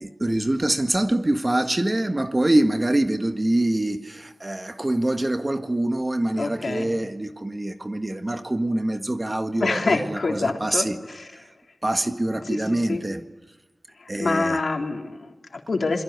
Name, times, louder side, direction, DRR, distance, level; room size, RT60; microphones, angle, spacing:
voice 1, 0.0-11.0 11.3-11.4 11.8-13.2 14.1-14.6, right 1 dB, 25° right, 1.7 m, -24 dB
voice 2, 6.4-6.9 9.6-10.9 12.9-13.0 14.0-16.0, left 3 dB, 70° left, 3.6 m, -26 dB
28.0 x 22.5 x 8.3 m
wide cardioid pair, 90°, 0 cm